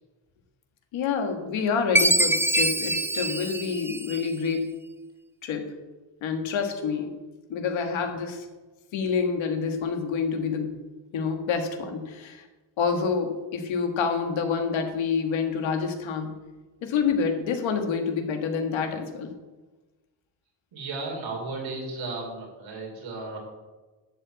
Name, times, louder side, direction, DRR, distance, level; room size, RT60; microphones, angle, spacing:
voice 1, 0.9-4.7 5.4-5.7 6.2-7.2 7.5-8.5 8.9-10.7 11.1-12.5 12.8-16.3 16.8-19.3, left 5 dB, 90° left, 5 dB, 1.8 m, -27 dB
Chime, 2.0-4.5, right 1 dB, 5° right, 0.4 m, -24 dB
voice 2, 20.7-23.4, right 3 dB, 85° right, 0 dB, 4.3 m, -34 dB
12.5 x 4.9 x 8.2 m, 1.2 s
cardioid pair, 90°, 45 cm